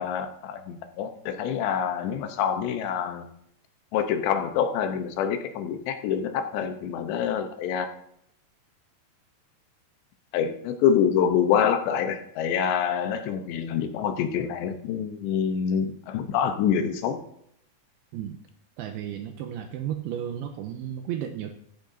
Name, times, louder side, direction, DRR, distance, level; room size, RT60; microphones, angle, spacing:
voice 1, 0.0-3.2 3.9-7.9 10.3-17.2, left 8 dB, 85° left, 7 dB, 3.1 m, -26 dB
voice 2, 18.8-21.5, right 10 dB, 80° right, 5 dB, 2.4 m, -33 dB
14.0 x 12.0 x 2.7 m, 0.73 s
omnidirectional pair, 5.0 m